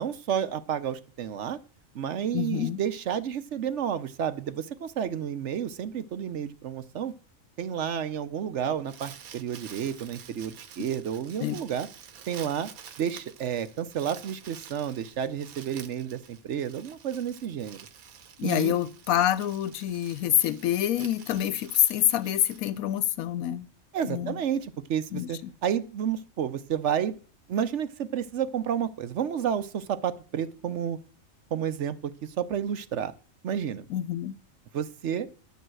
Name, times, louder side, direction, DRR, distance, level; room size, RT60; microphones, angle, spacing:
voice 1, 0.0-1.6 1.9-7.1 7.6-11.9 12.3-12.7 13.0-17.8 18.4-18.7 23.9-27.1 27.5-31.0 31.5-33.1 33.4-33.8 34.7-35.3, right 8 dB, 60° right, 1.0 m, -31 dB
voice 2, 2.3-2.8 11.4-11.6 18.4-23.7 24.0-24.4 25.1-25.5 33.9-34.4, left 11 dB, 90° left, 1.1 m, -26 dB
Crumpling crinkling, 8.8-23.2, right 8 dB, 85° right, 1.4 m, -49 dB
11.0 x 5.5 x 7.6 m
omnidirectional pair, 1.5 m